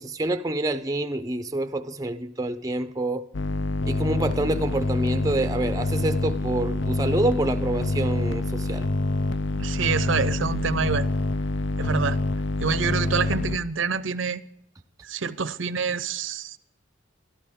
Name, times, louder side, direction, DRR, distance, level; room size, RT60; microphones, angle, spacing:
voice 1, 0.0-3.2 3.8-8.8, right 2 dB, 20° right, 0.5 m, -27 dB
sound 1, 3.3-13.6, left 2 dB, 65° left, 0.6 m, -26 dB
voice 2, 9.6-11.1 11.8-12.2 12.6-14.4 15.0-16.6, right 5 dB, 75° right, 0.7 m, -27 dB
24.0 x 13.0 x 3.6 m
head